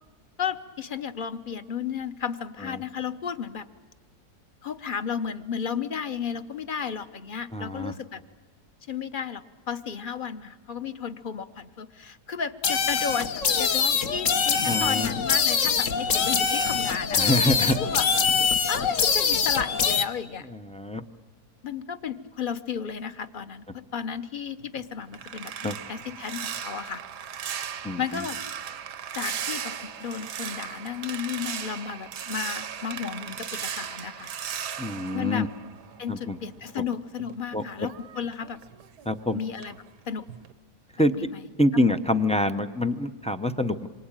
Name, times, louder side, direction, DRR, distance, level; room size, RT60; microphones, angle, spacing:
voice 1, 0.4-3.7 4.6-8.2 8.9-17.3 17.6-18.1 18.7-20.5 21.6-25.5 25.9-27.0 28.0-28.4 29.1-34.3 35.1-35.5 36.0-38.6 39.3-39.7 40.1-40.3 41.1-41.4 41.7-42.0, left 7 dB, 40° left, 11 dB, 0.9 m, -33 dB
voice 2, 7.5-7.9 14.7-15.1 17.2-17.8 20.5-21.0 25.6-25.8 27.8-28.0 34.8-35.5 36.1-36.4 37.5-37.6 39.1-39.4 41.0-41.1 41.6-43.9, left 1 dB, 10° left, 8 dB, 0.4 m, -25 dB
sound 1, 12.6-20.0, left 6 dB, 55° left, 1.3 m, -24 dB
sound 2, 24.6-36.2 36.6-39.2 39.6-39.9 40.3-40.5, right 8 dB, 80° right, 1.6 m, -37 dB
27.0 x 23.5 x 8.9 m, 1.4 s
omnidirectional pair, 1.7 m